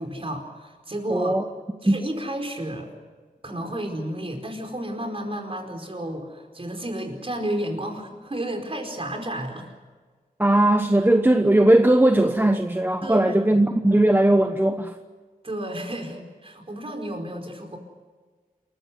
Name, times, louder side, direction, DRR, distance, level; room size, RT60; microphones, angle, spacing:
voice 1, 0.0-1.4 1.8-2.9 3.4-9.7 13.0-13.6 15.4-17.8, right 1 dB, 40° right, 3 dB, 4.7 m, -32 dB
voice 2, 1.1-1.4 1.9-2.0 10.4-15.0, right 1 dB, 15° right, 6 dB, 1.1 m, -18 dB
27.5 x 15.0 x 9.7 m, 1.4 s
wide cardioid pair, 95°, 15 cm